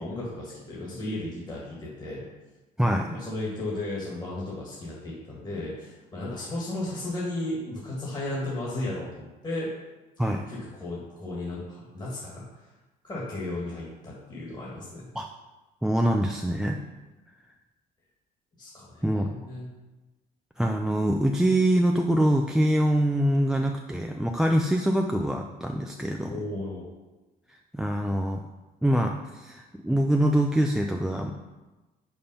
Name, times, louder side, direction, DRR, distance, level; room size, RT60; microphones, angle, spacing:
voice 1, 0.0-2.2 3.0-9.7 10.2-12.4 13.0-15.1 18.6-19.7 26.2-26.8, left 1 dB, 25° left, -6 dB, 1.8 m, -34 dB
voice 2, 2.8-3.1 10.2-10.5 15.1-15.3 15.8-16.8 19.0-19.3 20.6-26.4 27.7-28.4 28.8-31.3, right 1 dB, 5° right, 3 dB, 0.4 m, -24 dB
5.4 x 4.3 x 5.6 m, 1.1 s
cardioid pair, 110°, 17 cm